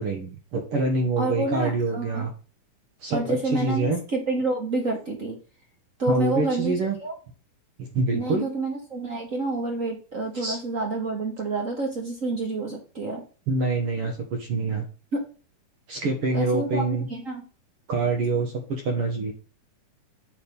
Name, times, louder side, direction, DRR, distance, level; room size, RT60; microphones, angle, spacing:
voice 1, 0.0-2.3 3.0-4.0 6.1-7.0 7.8-8.5 10.4-10.6 13.5-14.8 15.9-17.1 17.9-19.3, right 3 dB, 55° right, 3 dB, 1.8 m, -26 dB
voice 2, 1.2-2.2 3.1-5.4 6.0-6.7 7.0-7.1 8.1-13.2 15.1-15.2 16.3-17.5, right 2 dB, 40° right, 1 dB, 1.1 m, -28 dB
7.2 x 4.2 x 5.2 m, 0.37 s
omnidirectional pair, 3.7 m